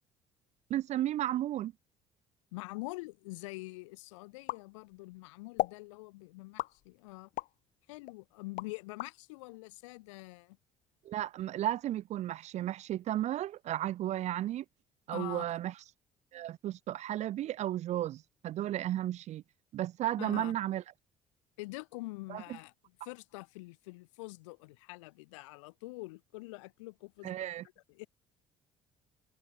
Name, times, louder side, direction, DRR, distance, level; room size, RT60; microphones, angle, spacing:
voice 1, 0.7-1.7 11.1-14.6 15.1-15.7 16.3-19.4 19.7-20.8 22.3-22.4 27.2-27.6, right 13 dB, 45° right, 0.4 m, -34 dB
voice 2, 2.5-7.3 7.9-10.6 15.1-15.5 20.2-20.6 21.6-22.7 23.0-27.5 27.9-28.1, left 23 dB, 75° left, 4.7 m, -45 dB
sound 1, 4.5-5.2 5.6-5.8 6.6-7.6 8.1-9.1, left 16 dB, 55° left, 0.6 m, -36 dB
open air
figure-of-eight pair, 55°, 16 cm